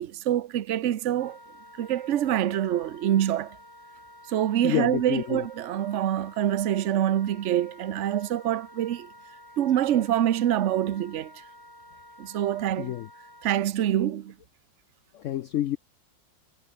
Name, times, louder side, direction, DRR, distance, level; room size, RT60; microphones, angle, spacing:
voice 1, 0.0-1.4 1.8-3.6 4.3-9.1 9.6-11.3 12.2-12.9 13.4-14.3, right 11 dB, 55° right, 0.9 m, -25 dB
Wind instrument woodwind instrument, 1.2-13.6, left 1 dB, 10° left, 5.0 m, -50 dB
voice 2, 4.6-5.5 12.8-13.1 15.1-15.8, left 12 dB, 85° left, 0.6 m, -28 dB
omnidirectional pair, 1.9 m